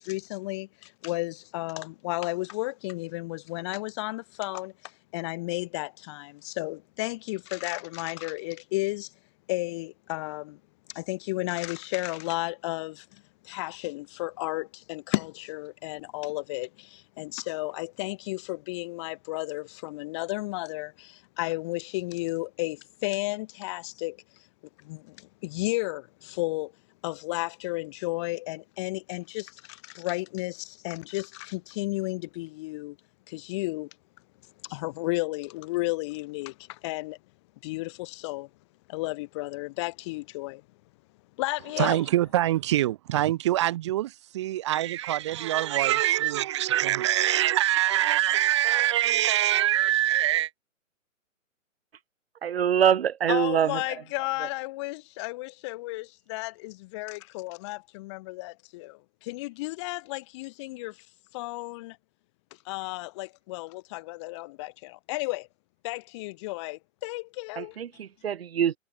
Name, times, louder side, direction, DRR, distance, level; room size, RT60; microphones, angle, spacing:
voice 1, 0.0-9.1 9.5-10.6 10.9-24.2 24.8-26.7 27.0-33.0 33.3-33.9 34.6-37.2 37.6-38.5 38.9-40.6 41.4-42.1 53.3-61.1 61.3-62.0 62.6-65.5 65.8-67.8, left 22 dB, 20° left, 3.3 m, -33 dB
voice 2, 41.8-50.5, right 13 dB, 20° right, 1.4 m, -24 dB
voice 3, 52.4-53.8 54.4-54.5 67.6-68.7, right 9 dB, 45° right, 4.1 m, -24 dB
hypercardioid pair, 170°, 40 cm